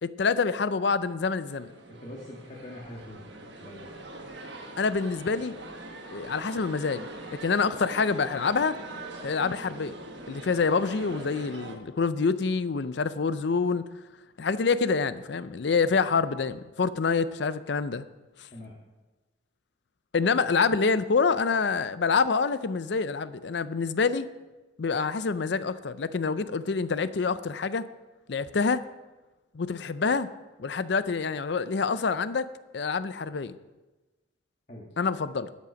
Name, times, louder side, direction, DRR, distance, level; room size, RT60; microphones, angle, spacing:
voice 1, 0.0-1.7 4.8-5.5 6.1-7.1 7.4-8.8 9.2-9.9 10.3-13.9 14.4-18.0 20.1-24.3 24.8-27.9 28.3-28.8 29.5-30.3 30.6-32.5 32.7-33.6 35.0-35.5, left 4 dB, 60° left, 14 dB, 0.5 m, -26 dB
sound 1, 1.4-11.8, right 2 dB, 65° right, 1.4 m, -42 dB
voice 2, 1.9-3.3 3.6-3.9 18.5-18.8 34.7-34.9, left 1 dB, 40° left, -3 dB, 1.6 m, -43 dB
12.5 x 8.4 x 5.2 m, 1.1 s
head